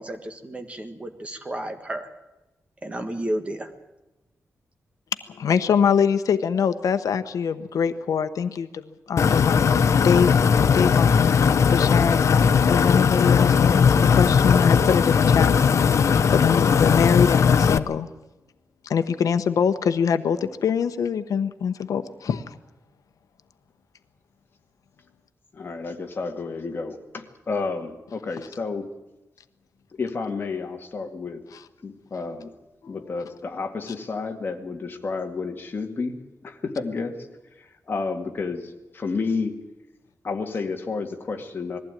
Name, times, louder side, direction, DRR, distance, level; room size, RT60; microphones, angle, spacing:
voice 1, 0.0-2.1 2.8-3.7, right 1 dB, 20° right, 7 dB, 1.6 m, -32 dB
voice 2, 5.3-10.3 10.7-15.5 16.3-18.1 18.8-22.5 31.5-31.6 32.8-33.0, left 7 dB, 90° left, 10 dB, 1.0 m, -24 dB
sound 1, 9.2-17.8, left 6 dB, 60° left, 0.8 m, -18 dB
voice 3, 25.5-28.9 30.0-31.4 31.8-32.5 32.9-36.2 36.4-37.1 37.6-39.6 40.2-41.8, left 4 dB, 35° left, 3 dB, 2.1 m, -30 dB
21.0 x 15.0 x 9.1 m, 1.0 s
wide cardioid pair, 175°, 6 cm